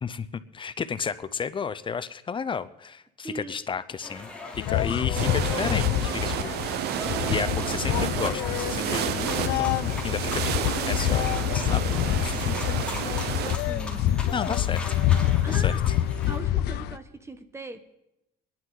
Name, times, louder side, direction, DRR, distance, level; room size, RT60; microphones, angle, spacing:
voice 1, 0.0-6.8 7.2-12.5 13.5-13.6 14.3-14.8 15.5-15.7, left 6 dB, 30° left, 14 dB, 0.6 m, -33 dB
voice 2, 3.2-3.6 13.6-14.2 14.5-14.6 15.4-15.8 16.3-17.8, right 2 dB, 15° right, 10 dB, 1.2 m, -40 dB
sound 1, 4.0-16.4, left 2 dB, 5° left, 2.8 m, -40 dB
sound 2, 4.5-17.0, left 12 dB, 75° left, 0.6 m, -26 dB
sound 3, 5.1-13.6, right 11 dB, 75° right, 0.7 m, -31 dB
25.5 x 10.5 x 3.9 m, 0.89 s
cardioid pair, 110°, 17 cm